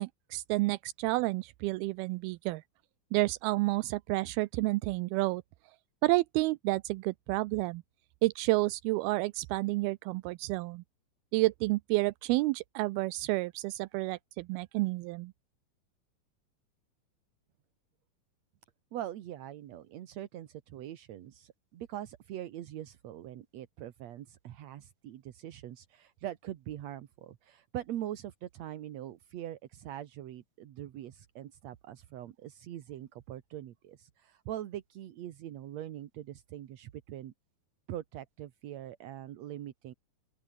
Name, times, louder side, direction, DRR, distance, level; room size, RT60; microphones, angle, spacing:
voice 1, 0.0-2.6 3.1-5.4 6.0-7.8 8.2-10.8 11.3-15.3, right 21 dB, 85° right, 2.5 m, -30 dB
voice 2, 18.9-37.3 37.9-39.9, right 12 dB, 65° right, 1.9 m, -42 dB
open air
omnidirectional pair, 4.4 m